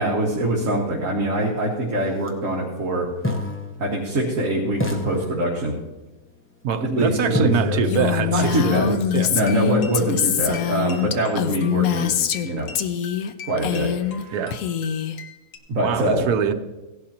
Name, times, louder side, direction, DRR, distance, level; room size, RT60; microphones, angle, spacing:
voice 1, 0.0-3.1 3.8-5.7 6.8-7.8 8.3-8.9 9.3-12.1 12.4-12.7 13.5-14.4 15.7-16.3, right 1 dB, 55° right, -3 dB, 2.0 m, -24 dB
sound 1, 2.1-2.3 3.2-4.4 4.8-6.0 7.3-11.3, left 5 dB, 10° left, 0.8 m, -30 dB
voice 2, 6.6-9.3 14.3-14.6 15.8-16.5, right 7 dB, 75° right, 7 dB, 1.3 m, -24 dB
Female speech woman speaking, 7.9-12.5 12.8-13.3 13.6-14.2 14.5-15.2, left 8 dB, 70° left, 1.1 m, -24 dB
sound 2, 8.3-15.6, left 6 dB, 90° left, 1.7 m, -42 dB
17.0 x 11.5 x 2.9 m, 1.0 s
omnidirectional pair, 1.6 m